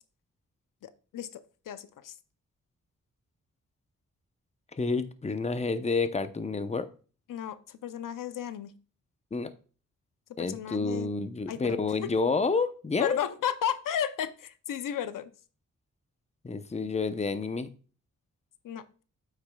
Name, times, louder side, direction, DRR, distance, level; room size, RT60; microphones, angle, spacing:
voice 1, 0.8-1.4 1.7-2.1 7.3-8.7 10.4-11.1 11.5-12.1 13.0-15.3 18.6-18.8, left 9 dB, 85° left, 0.6 m, -34 dB
voice 2, 4.8-6.9 9.3-9.5 10.4-13.2 16.4-17.7, left 4 dB, 20° left, 0.7 m, -29 dB
8.6 x 8.3 x 2.3 m
cardioid pair, 75°, 32 cm